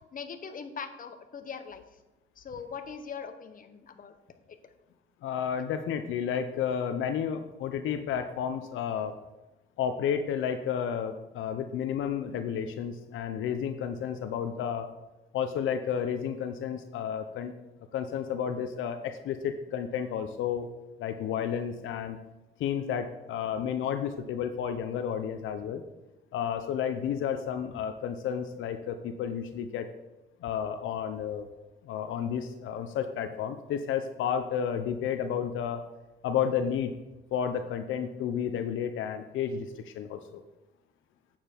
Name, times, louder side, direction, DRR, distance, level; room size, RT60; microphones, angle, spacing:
voice 1, 0.1-1.8 2.4-4.1, left 6 dB, 45° left, 8 dB, 1.0 m, -41 dB
voice 2, 5.2-9.1 9.8-14.9 15.3-17.5 17.9-20.7 21.0-22.2 22.6-25.8 26.3-29.9 30.4-31.5 31.8-35.8 36.2-36.9 37.3-40.4, left 8 dB, 80° left, 8 dB, 0.7 m, -31 dB
8.7 x 7.3 x 4.5 m, 1.0 s
cardioid pair, 90°, 20 cm